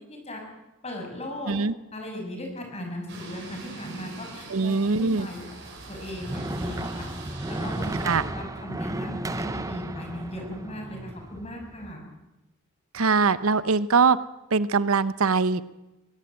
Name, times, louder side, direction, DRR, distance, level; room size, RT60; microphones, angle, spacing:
voice 1, 0.1-0.4 0.8-1.5 1.9-5.4 5.9-7.1 7.5-12.0, left 1 dB, 30° left, 2 dB, 6.0 m, -37 dB
sound 1, 3.1-8.2, right 2 dB, 55° right, 6.3 m, -42 dB
voice 2, 4.5-5.3 8.0-8.2 12.9-14.2 14.5-15.6, right 4 dB, 75° right, 16 dB, 0.8 m, -22 dB
sound 2, 5.8-11.9, right 1 dB, 15° right, 0.7 m, -34 dB
22.5 x 16.5 x 9.0 m, 0.98 s
head